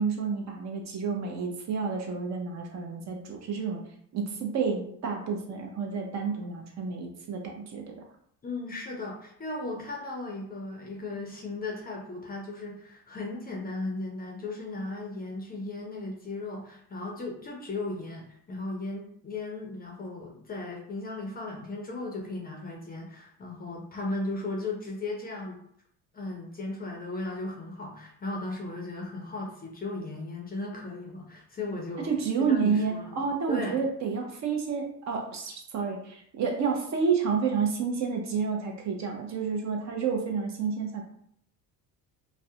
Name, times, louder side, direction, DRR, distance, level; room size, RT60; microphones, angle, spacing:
voice 1, 0.0-3.8 4.1-8.0 32.0-41.0, right 5 dB, 45° right, 2 dB, 0.5 m, -30 dB
voice 2, 8.4-25.6 26.1-32.1 32.4-33.9, left 2 dB, 25° left, -1 dB, 0.4 m, -36 dB
2.3 x 2.1 x 2.6 m, 0.67 s
cardioid pair, 110°, 40 cm